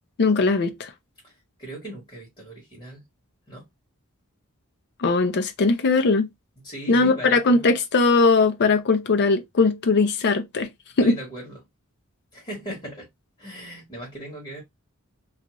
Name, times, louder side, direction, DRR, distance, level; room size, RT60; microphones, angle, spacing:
voice 1, 0.2-0.9 5.0-6.3 6.9-10.7 11.0-11.2, left 3 dB, 50° left, 0.5 m, -20 dB
voice 2, 1.6-3.0 3.5-3.6 6.6-7.7 11.0-11.6 12.3-13.1 13.4-14.6, right 1 dB, 25° left, 1.3 m, -38 dB
2.4 x 2.4 x 2.9 m
head